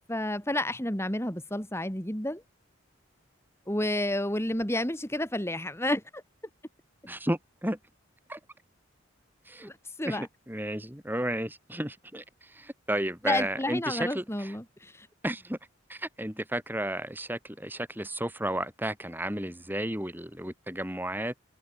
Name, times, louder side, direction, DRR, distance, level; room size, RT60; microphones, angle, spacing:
voice 1, 0.1-2.4 3.7-6.2 9.6-10.3 13.2-15.1, left 1 dB, 10° left, 3.2 m, -30 dB
voice 2, 7.1-7.8 8.3-8.4 9.4-9.7 10.0-14.6 15.2-15.6 15.9-21.4, right 1 dB, 10° right, 6.7 m, -33 dB
head